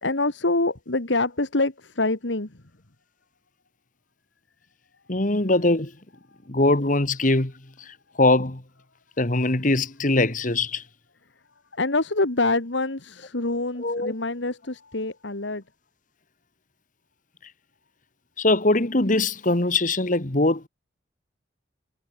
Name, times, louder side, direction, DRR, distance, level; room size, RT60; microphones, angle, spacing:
voice 1, 0.0-2.6 6.3-6.4 11.7-15.6, left 2 dB, 85° left, 2.2 m, -26 dB
voice 2, 5.1-5.9 6.5-7.5 7.8-8.6 9.2-10.8 13.8-14.1 18.4-20.7, left 2 dB, 45° left, 1.9 m, -22 dB
head